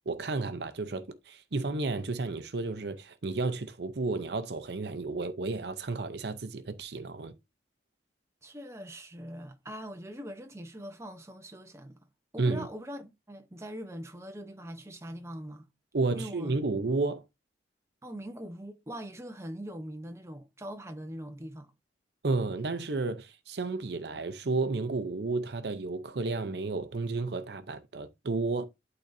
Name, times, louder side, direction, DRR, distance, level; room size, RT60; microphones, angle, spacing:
voice 1, 0.1-7.3 12.4-12.7 15.9-17.2 22.2-28.7, right 3 dB, 65° right, 0.7 m, -32 dB
voice 2, 8.4-12.0 12.3-15.7 16.1-16.6 18.0-21.7, equal, 15° right, 0.8 m, -42 dB
11.5 x 3.9 x 2.6 m
head